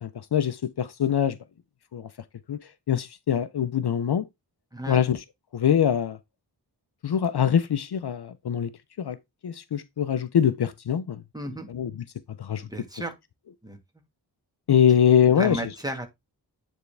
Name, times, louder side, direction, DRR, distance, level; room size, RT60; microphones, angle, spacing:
voice 1, 0.0-1.4 1.9-2.1 2.5-2.6 2.9-4.3 4.9-5.2 5.5-6.2 7.0-8.7 9.0-9.2 9.4-11.2 11.7-11.9 12.4-12.6 14.7-15.6, left 8 dB, 65° left, 0.6 m, -23 dB
voice 2, 4.7-5.0 11.3-11.7 12.6-13.1 13.6-13.8 15.2-16.1, right 1 dB, 10° right, 1.5 m, -33 dB
9.4 x 3.5 x 3.3 m
wide cardioid pair, 85°, 42 cm